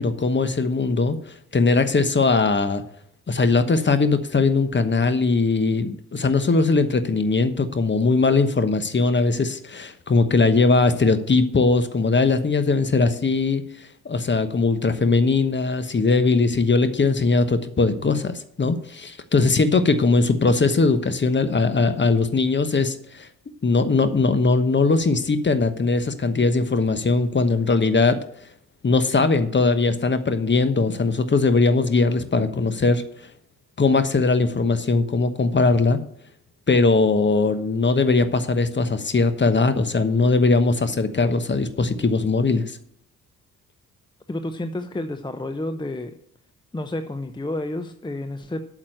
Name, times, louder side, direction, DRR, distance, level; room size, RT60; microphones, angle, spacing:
voice 1, 0.0-2.8 3.3-23.3 23.6-28.2 28.8-33.0 33.8-36.0 36.7-42.8, left 3 dB, 25° left, 11 dB, 1.1 m, -20 dB
voice 2, 44.3-46.1 46.7-48.6, left 1 dB, 10° left, 9 dB, 0.8 m, -30 dB
8.6 x 6.2 x 7.9 m, 0.71 s
hypercardioid pair, 45°, 41 cm